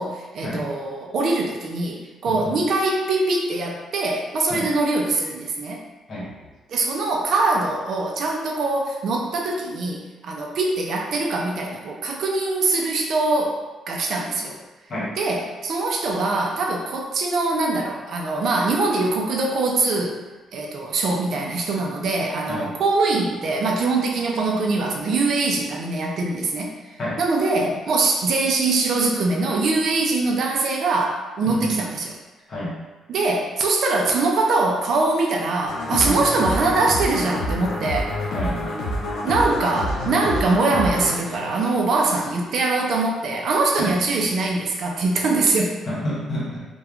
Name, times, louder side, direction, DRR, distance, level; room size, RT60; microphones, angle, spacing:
voice 1, 0.0-5.8 6.7-14.6 15.2-20.2 20.5-32.1 33.1-38.1 39.2-45.8, right 3 dB, 50° right, 0 dB, 0.3 m, -23 dB
voice 2, 2.3-2.6 4.5-4.6 6.1-6.3 14.9-15.1 22.5-22.6 27.0-27.2 31.5-31.8 32.5-32.7 36.0-36.1 38.3-38.7 43.8-43.9 45.9-46.6, left 1 dB, 35° left, -7 dB, 0.8 m, -28 dB
sound 1, 35.7-42.4, left 1 dB, 85° left, 0.5 m, -28 dB
3.0 x 2.1 x 2.3 m, 1.2 s
cardioid pair, 175°, 0 cm